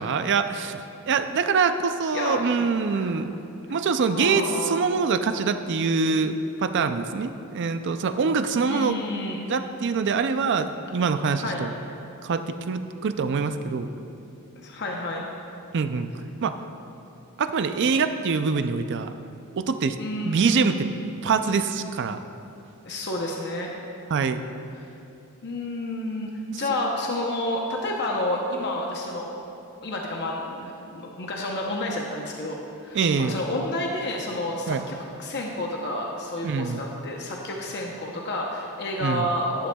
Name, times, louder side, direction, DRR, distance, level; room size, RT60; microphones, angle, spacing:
voice 1, 0.0-3.3 3.7-9.0 9.5-11.7 12.2-13.9 15.7-16.1 16.4-16.5 17.4-19.1 19.6-20.0 20.2-20.9 21.2-22.2 24.1-24.4 32.9-33.4 34.7-34.8 36.4-36.8 39.0-39.3, right 5 dB, 55° right, 9 dB, 0.4 m, -24 dB
voice 2, 2.1-3.2 4.1-4.8 8.6-9.4 11.4-11.6 14.6-15.3 20.0-20.9 22.8-23.7 24.8-24.9 25.4-29.4 29.8-39.7, left 1 dB, 50° left, -1 dB, 0.8 m, -30 dB
11.5 x 11.0 x 2.3 m, 2.7 s
head